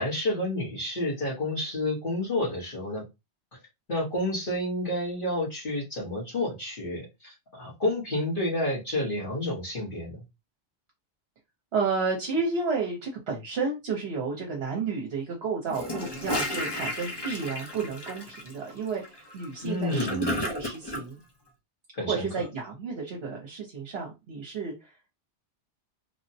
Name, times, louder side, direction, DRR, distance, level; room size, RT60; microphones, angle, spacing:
voice 1, 0.0-3.0 3.5-3.6 3.9-10.2 19.6-20.3 21.9-22.3, left 1 dB, 50° left, 1.3 m, -30 dB
voice 2, 11.7-21.2 22.1-24.9, right 4 dB, 70° right, 1.1 m, -31 dB
Gurgling / Toilet flush, 15.7-21.0, left 1 dB, 25° left, 0.6 m, -33 dB
3.2 x 2.1 x 2.7 m
omnidirectional pair, 1.1 m